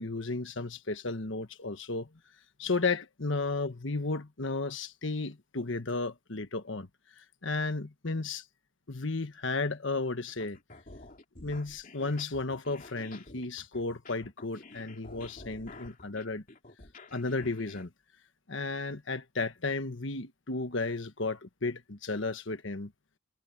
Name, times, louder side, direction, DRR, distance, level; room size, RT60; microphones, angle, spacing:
voice 1, 0.0-2.1 2.6-6.9 7.2-8.4 8.9-10.6 11.4-16.4 17.1-17.9 18.5-22.9, left 3 dB, 65° left, 1.4 m, -33 dB
sound 1, 10.3-17.9, left 2 dB, 40° left, 2.9 m, -50 dB
head